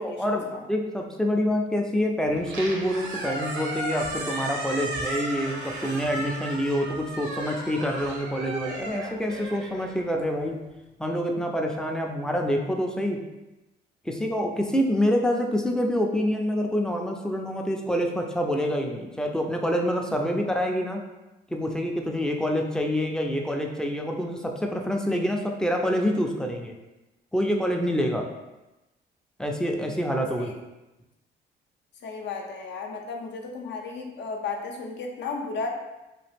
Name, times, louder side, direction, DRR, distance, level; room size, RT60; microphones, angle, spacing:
voice 1, 0.0-10.6 11.0-13.2 14.0-21.0 21.5-26.7 27.3-28.3 29.4-30.5, equal, 5° left, 1 dB, 0.4 m, -26 dB
Squeak, 2.3-10.6, right 1 dB, 70° right, 0.7 m, -35 dB
voice 2, 32.0-35.7, left 4 dB, 65° left, 2 dB, 0.6 m, -34 dB
2.9 x 2.3 x 3.3 m, 1.0 s
cardioid pair, 90°, 20 cm